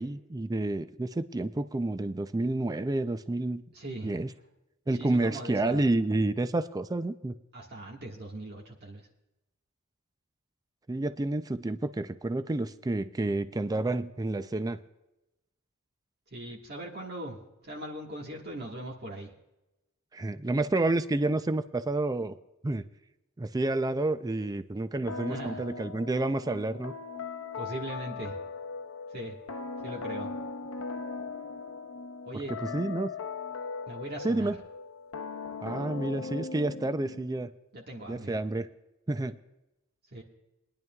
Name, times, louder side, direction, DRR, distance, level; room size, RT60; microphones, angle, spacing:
voice 1, 0.0-3.6 4.0-4.3 4.9-7.3 10.9-14.8 20.1-22.4 22.6-22.8 23.4-26.9 32.5-33.1 34.2-34.6 35.6-37.5 38.1-38.7 39.1-39.4, right 2 dB, 15° right, 11 dB, 0.4 m, -29 dB
voice 2, 3.7-4.2 4.9-5.9 7.5-9.0 16.3-17.4 17.6-19.3 25.3-25.6 27.5-28.3 29.1-29.4 29.8-30.3 32.2-32.5 33.9-34.5 37.7-38.3 40.1-40.2, right 1 dB, 50° right, -2 dB, 1.5 m, -40 dB
sound 1, 25.1-37.5, left 4 dB, 70° left, 0.8 m, -39 dB
22.0 x 10.5 x 2.3 m, 0.95 s
head